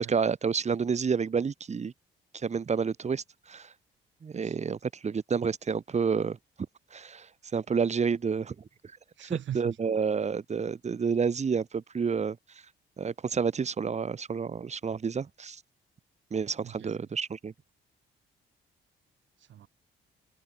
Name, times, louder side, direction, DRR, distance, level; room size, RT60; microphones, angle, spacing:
voice 1, 0.1-1.9 2.3-3.7 4.2-6.4 6.9-8.5 9.5-12.4 13.0-15.6 16.3-17.5, right 6 dB, 35° right, 1.4 m, -29 dB
voice 2, 9.1-9.8 16.6-17.0 19.4-19.7, right 11 dB, 70° right, 6.6 m, -41 dB
cardioid pair, 90°, 20 cm